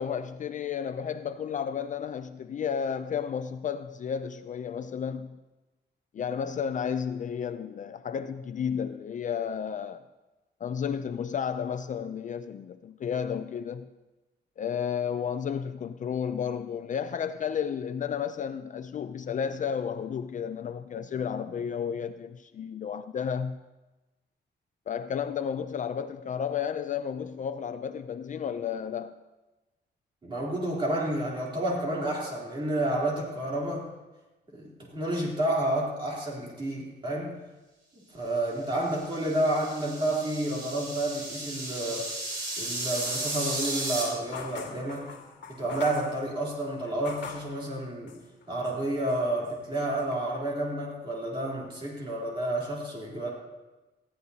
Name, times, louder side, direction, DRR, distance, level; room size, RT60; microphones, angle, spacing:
voice 1, 0.0-5.4 6.1-10.0 10.6-13.9 14.6-23.6 24.9-29.2, left 7 dB, 45° left, 0.4 m, -32 dB
voice 2, 30.2-33.9 34.5-37.3 38.1-42.1 42.6-45.1 45.5-48.2 48.5-53.3, right 1 dB, 25° right, 3.4 m, -30 dB
sound 1, 38.9-44.0, right 2 dB, 50° right, 5.7 m, -34 dB
sound 2, 44.3-47.6 48.1-48.8 49.1-50.1, left 6 dB, 75° left, 1.8 m, -44 dB
20.0 x 14.5 x 2.8 m
wide cardioid pair, 175°, 19 cm